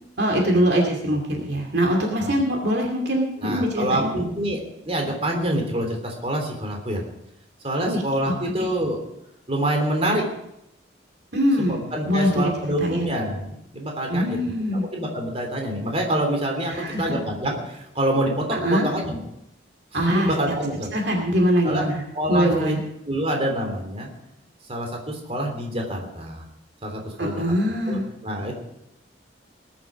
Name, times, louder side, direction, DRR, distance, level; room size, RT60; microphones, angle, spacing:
voice 1, 0.2-4.2 7.8-8.3 11.3-11.8 12.1-12.5 12.8-13.1 14.1-14.8 16.7-17.2 18.5-18.9 19.9-20.5 20.9-22.0 22.3-22.8 27.2-28.0, equal, 60° right, 1 dB, 2.5 m, -23 dB
voice 2, 3.4-4.6 4.8-7.0 7.6-9.0 9.5-10.3 11.6-19.2 19.9-20.9 21.6-21.9 22.1-22.7 23.1-24.1 24.7-26.4 26.8-27.4 27.9-28.5, right 1 dB, 30° right, 2 dB, 3.3 m, -26 dB
20.0 x 11.0 x 5.0 m, 0.83 s
head